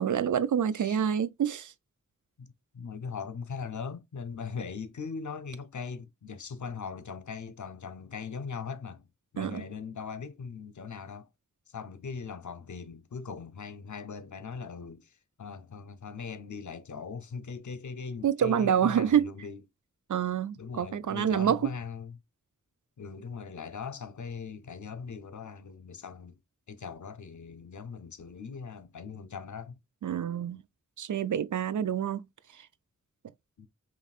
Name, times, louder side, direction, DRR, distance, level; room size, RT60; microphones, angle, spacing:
voice 1, 0.0-1.7 9.4-9.6 18.2-19.3 20.1-21.6 30.0-30.6 31.0-32.2, right 8 dB, 75° right, 0.5 m, -27 dB
voice 2, 0.7-1.1 2.4-9.1 9.3-11.3 11.7-19.6 20.6-22.2 23.0-26.4 26.7-29.8 33.6-33.7, left 5 dB, 75° left, 0.7 m, -40 dB
5.1 x 3.0 x 2.4 m
wide cardioid pair, 45°, 30 cm